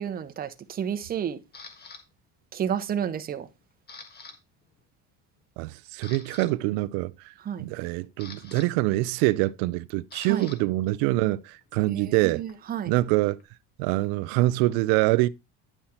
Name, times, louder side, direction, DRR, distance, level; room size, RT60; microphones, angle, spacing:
voice 1, 0.0-1.4 2.5-3.5 7.4-7.7 10.2-10.5 11.9-12.9, right 8 dB, 25° right, 0.8 m, -31 dB
Camera, 1.5-2.0 2.6-2.9 3.3-4.4 4.6-4.8 5.4-5.5 5.9-6.5 7.7-10.6 10.9-13.5, left 4 dB, 30° left, 1.5 m, -47 dB
voice 2, 5.6-12.4 12.9-13.4 13.8-15.3, right 18 dB, 90° right, 0.5 m, -25 dB
10.0 x 5.7 x 4.3 m
cardioid pair, 155°, 36 cm